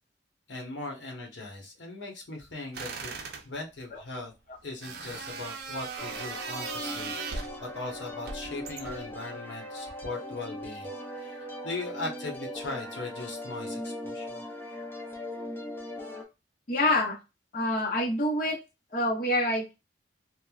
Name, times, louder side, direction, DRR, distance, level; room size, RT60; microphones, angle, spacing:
voice 1, 0.5-3.2 3.4-4.3 4.6-10.9 11.2-11.3 11.6-14.4, left 2 dB, 85° left, 1 dB, 1.0 m, -39 dB
sound 1, 2.7-3.5 4.8-7.6 8.2-9.1, right 4 dB, 55° right, 0.5 m, -38 dB
sound 2, 6.0-16.2, left 1 dB, 10° left, 0.5 m, -39 dB
voice 2, 16.7-17.2 17.5-18.6 18.9-19.7, left 1 dB, 50° left, -2 dB, 0.7 m, -26 dB
3.1 x 2.1 x 2.3 m, 0.26 s
head